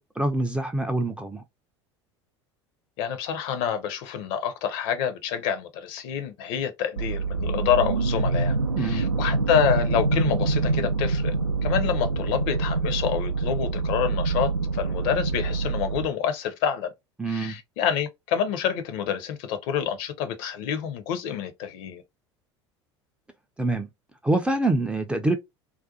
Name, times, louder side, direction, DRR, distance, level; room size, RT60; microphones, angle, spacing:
voice 1, 0.0-1.4 8.8-9.1 17.2-17.5 23.6-23.9 24.2-25.4, right 2 dB, 5° right, 0.4 m, -25 dB
voice 2, 3.0-11.3 11.6-16.9 17.2-22.0, left 8 dB, 50° left, 0.6 m, -27 dB
sound 1, 7.0-16.1, right 3 dB, 90° right, 0.4 m, -25 dB
2.5 x 2.2 x 2.5 m
figure-of-eight pair, 70°, 15 cm